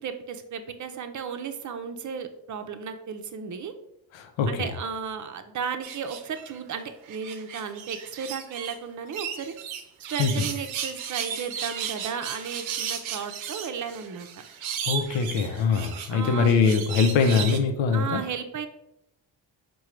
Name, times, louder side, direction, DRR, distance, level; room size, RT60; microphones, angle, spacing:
voice 1, 0.0-3.7 4.5-9.5 10.0-14.3 16.1-16.5 17.9-18.7, right 6 dB, 40° right, 8 dB, 0.6 m, -34 dB
voice 2, 4.1-4.7 10.2-10.3 14.8-18.2, left 5 dB, 75° left, 6 dB, 0.7 m, -23 dB
sound 1, 5.8-6.6 7.0-8.8 9.1-17.6, right 8 dB, 85° right, 0.6 m, -35 dB
4.7 x 2.3 x 4.4 m, 0.84 s
supercardioid pair, 55°, 46 cm